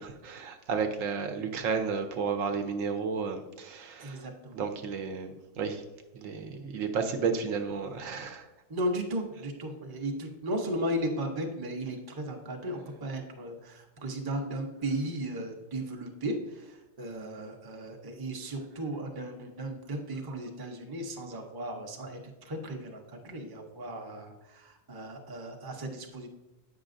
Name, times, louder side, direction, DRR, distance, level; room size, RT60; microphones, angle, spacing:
voice 1, 0.0-4.2 4.5-5.8 6.1-8.4, right 5 dB, 80° right, 5 dB, 1.1 m, -32 dB
voice 2, 4.0-4.6 8.7-26.3, right 1 dB, 25° right, 2 dB, 0.6 m, -35 dB
8.3 x 5.8 x 2.5 m, 1.0 s
omnidirectional pair, 1.4 m